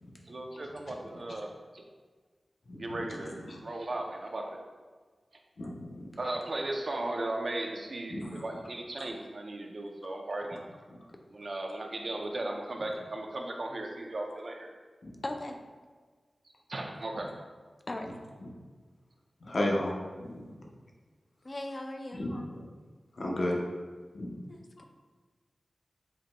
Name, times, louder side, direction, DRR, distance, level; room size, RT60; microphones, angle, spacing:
voice 1, 0.3-1.8 2.8-3.3 3.6-4.6 6.2-10.6 11.3-14.7 16.7-17.2, right 2 dB, 55° right, 2 dB, 0.5 m, -36 dB
voice 2, 2.7-3.6 5.6-6.2 8.1-8.5 10.1-10.2 10.9-11.0 15.0-15.2 18.4-18.5 19.4-19.9 20.2-20.7 22.1-22.7 23.1-23.6 24.1-24.4 24.8-24.9, left 1 dB, 65° left, -2 dB, 0.8 m, -35 dB
voice 3, 15.2-15.6 17.9-18.2 21.4-22.2 24.5-24.8, left 1 dB, 40° left, 4 dB, 0.4 m, -38 dB
7.3 x 3.0 x 2.2 m, 1.4 s
wide cardioid pair, 85°, 0 cm